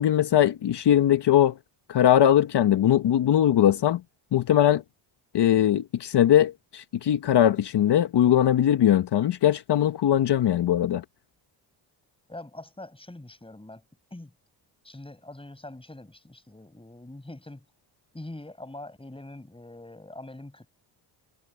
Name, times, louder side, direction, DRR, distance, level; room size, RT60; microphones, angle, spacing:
voice 1, 0.0-1.5 1.9-4.0 4.3-4.8 5.3-11.0, left 11 dB, 60° left, 1.2 m, -21 dB
voice 2, 12.3-13.8 14.1-14.3 14.8-17.6 18.1-20.7, left 2 dB, 10° left, 7.2 m, -43 dB
cardioid pair, 80°, 46 cm